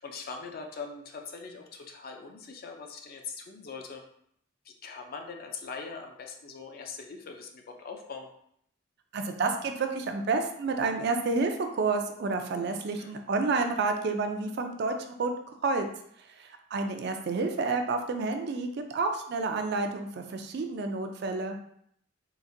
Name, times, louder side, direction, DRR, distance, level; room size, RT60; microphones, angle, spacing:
voice 1, 0.0-4.0 4.6-8.3 13.0-13.1, left 5 dB, 50° left, 3 dB, 0.4 m, -42 dB
voice 2, 9.1-15.3 15.6-15.9 16.4-21.6, right 3 dB, 55° right, 5 dB, 0.3 m, -29 dB
3.9 x 2.5 x 2.5 m, 0.69 s
head